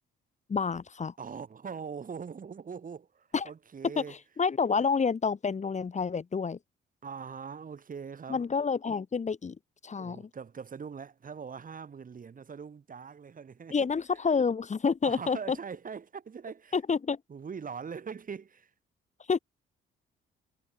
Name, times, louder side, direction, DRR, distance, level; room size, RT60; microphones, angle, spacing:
voice 1, 0.5-1.1 3.3-3.5 4.0-6.6 8.3-9.6 9.8-10.2 13.7-15.6 16.7-17.2 19.3-19.4, left 5 dB, 35° left, 2.9 m, -28 dB
voice 2, 1.2-4.2 7.0-8.4 10.0-13.9 15.0-16.8 17.3-18.7, right 6 dB, 45° right, 6.6 m, -42 dB
cardioid pair, 90°, 20 cm